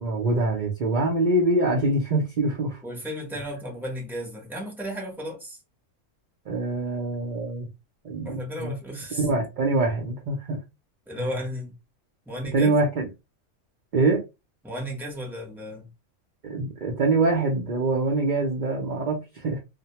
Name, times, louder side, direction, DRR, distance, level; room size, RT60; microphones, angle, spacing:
voice 1, 0.0-2.8 6.5-7.7 8.0-8.7 9.1-10.6 11.2-11.3 12.5-13.1 13.9-14.2 16.4-19.6, right 2 dB, 50° right, 0.6 m, -24 dB
voice 2, 2.8-5.6 8.2-9.3 11.1-11.7 12.3-12.7 14.6-15.9, equal, ahead, 0.5 m, -34 dB
2.2 x 2.1 x 2.8 m
omnidirectional pair, 1.3 m